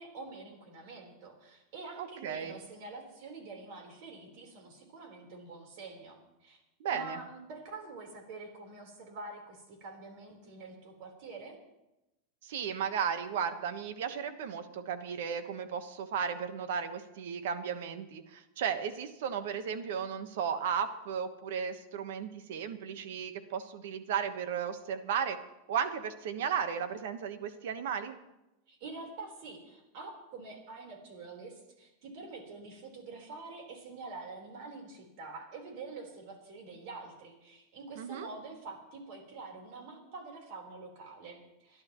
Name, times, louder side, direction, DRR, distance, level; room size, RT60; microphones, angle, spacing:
voice 1, 0.0-6.6 6.9-11.6 28.7-41.8, right 3 dB, 50° right, 2 dB, 4.1 m, -46 dB
voice 2, 2.0-2.6 6.8-7.2 12.4-25.4 25.7-28.2 37.9-38.3, right 7 dB, 70° right, 10 dB, 1.2 m, -35 dB
28.5 x 11.5 x 3.1 m, 0.93 s
supercardioid pair, 165°, 0 cm